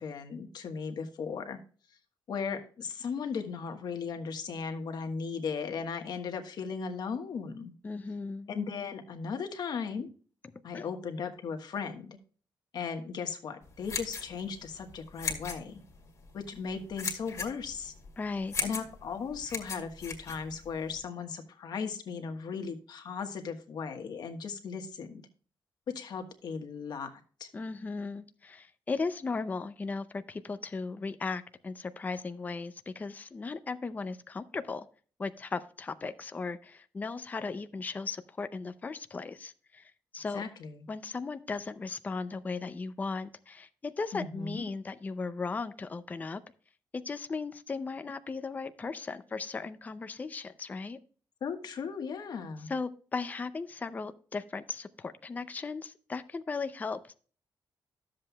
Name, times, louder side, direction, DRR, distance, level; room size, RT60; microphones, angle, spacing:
voice 1, 0.0-1.6 2.3-7.7 8.5-10.1 10.6-12.2 12.7-15.8 16.3-17.9 18.6-25.2 25.9-27.5 40.3-40.9 44.1-44.6 51.4-52.7, left 5 dB, 60° left, 6 dB, 1.3 m, -37 dB
voice 2, 7.8-8.5 10.7-10.9 18.2-18.5 27.5-34.9 35.2-40.4 40.9-46.4 46.9-51.0 52.7-57.1, left 4 dB, 20° left, 11 dB, 0.5 m, -37 dB
sound 1, 13.6-21.0, left 5 dB, 40° left, 2.1 m, -38 dB
13.0 x 7.6 x 2.3 m, 0.40 s
wide cardioid pair, 175°, 8 cm